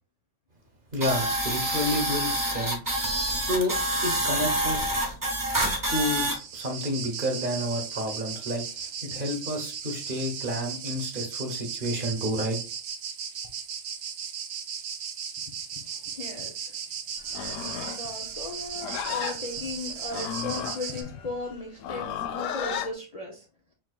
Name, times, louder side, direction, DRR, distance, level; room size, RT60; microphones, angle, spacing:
voice 1, 0.9-2.8 3.4-4.9 5.9-12.6, equal, 45° right, 3 dB, 1.2 m, -30 dB
sound 1, 1.0-6.4, right 1 dB, 20° right, 0.8 m, -27 dB
sound 2, 6.1-21.0, right 7 dB, 65° right, 0.9 m, -36 dB
voice 2, 15.8-16.8 17.5-23.5, left 2 dB, 40° left, 0 dB, 0.6 m, -37 dB
Livestock farm animals working animals, 17.2-22.9, left 8 dB, 85° left, 1.0 m, -34 dB
4.9 x 3.6 x 2.3 m, 0.32 s
omnidirectional pair, 1.3 m